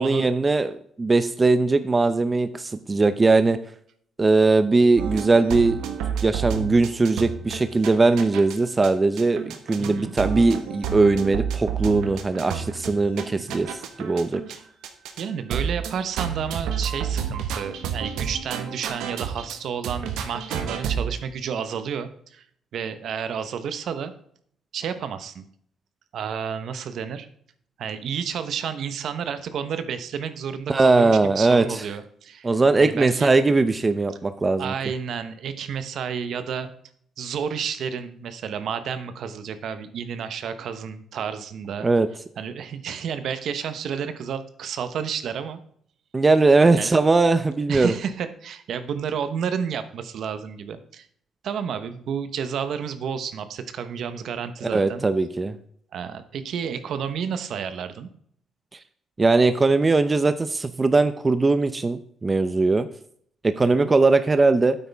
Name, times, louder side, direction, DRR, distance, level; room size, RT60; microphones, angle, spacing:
voice 1, 0.0-3.6 4.2-5.9 6.2-13.7 14.0-14.4 30.7-31.8 32.4-34.7 41.8-42.1 46.1-47.9 54.7-55.6 59.2-62.9 63.4-64.8, right 3 dB, 25° right, 12 dB, 0.6 m, -20 dB
sound 1, 5.0-8.6 8.8-8.9 9.2-14.6 14.8-15.2 15.5-19.6 19.8-21.2, right 7 dB, 90° right, 1.2 m, -30 dB
voice 2, 9.8-10.1 13.3-13.6 14.5-14.6 15.2-22.4 22.7-24.1 24.7-25.4 26.1-27.3 27.8-32.5 32.8-33.3 34.6-36.7 37.2-41.9 42.4-45.6 46.8-46.9 47.7-51.1 51.4-55.1 55.9-58.1 63.6-63.9, right 7 dB, 70° right, 11 dB, 1.0 m, -31 dB
9.3 x 8.2 x 3.5 m, 0.63 s
cardioid pair, 90°, 0 cm